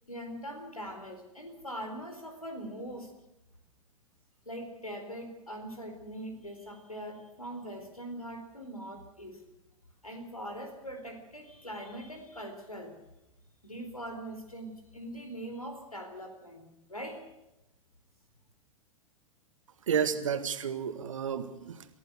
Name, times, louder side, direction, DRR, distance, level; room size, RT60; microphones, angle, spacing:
voice 1, 0.1-3.2 4.5-9.5 10.0-13.0 13.6-17.2, equal, 85° left, 6 dB, 4.4 m, -42 dB
voice 2, 19.9-21.9, right 7 dB, 65° right, 10 dB, 1.9 m, -31 dB
24.5 x 15.0 x 8.2 m, 0.91 s
figure-of-eight pair, 100°, 18 cm